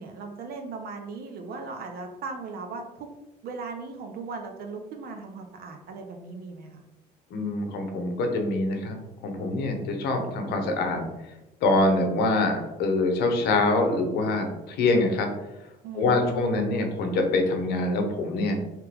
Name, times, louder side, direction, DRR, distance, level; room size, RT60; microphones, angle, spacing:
voice 1, 0.0-3.1 3.4-6.8 15.8-16.6, right 4 dB, 65° right, 4 dB, 0.7 m, -38 dB
voice 2, 7.3-11.1 11.6-15.3 15.9-18.6, left 2 dB, 80° left, 4 dB, 0.8 m, -25 dB
3.3 x 2.9 x 3.4 m, 0.97 s
cardioid pair, 110°, 17 cm